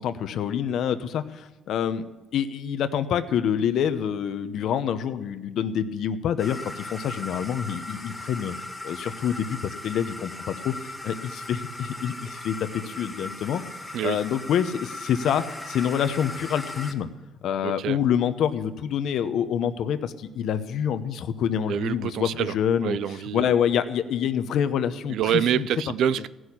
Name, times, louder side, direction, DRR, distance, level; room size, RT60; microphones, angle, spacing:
voice 1, 0.0-2.1 2.3-8.5 8.8-13.6 14.0-17.1 17.4-23.0 23.3-25.7, left 8 dB, 70° left, 0.9 m, -27 dB
sound 1, 6.4-16.9, left 2 dB, 5° left, 1.5 m, -38 dB
voice 2, 17.6-18.0 21.7-22.5 22.8-23.6 25.1-26.3, right 9 dB, 70° right, 0.5 m, -26 dB
16.0 x 6.3 x 10.0 m
cardioid pair, 115°, 0 cm